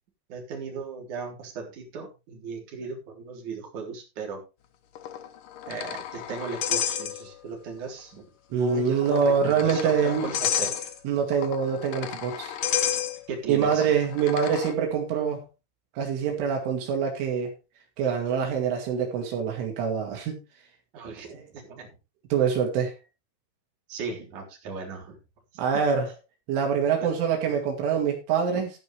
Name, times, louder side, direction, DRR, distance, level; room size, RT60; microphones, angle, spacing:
voice 1, 0.3-4.4 5.6-10.9 13.3-13.9 20.9-21.9 23.9-25.2 27.0-27.1 28.5-28.6, right 5 dB, 40° right, 0 dB, 4.7 m, -37 dB
sound 1, 4.9-7.6 7.9-8.0 8.9-14.7, left 10 dB, 75° left, 2.0 m, -32 dB
voice 2, 8.5-10.3 11.0-12.5 13.5-15.4 16.0-17.5 18.0-20.4 22.3-22.9 25.6-26.1 26.5-28.7, right 6 dB, 80° right, 1 dB, 4.8 m, -25 dB
13.0 x 10.5 x 3.3 m, 0.27 s
omnidirectional pair, 5.6 m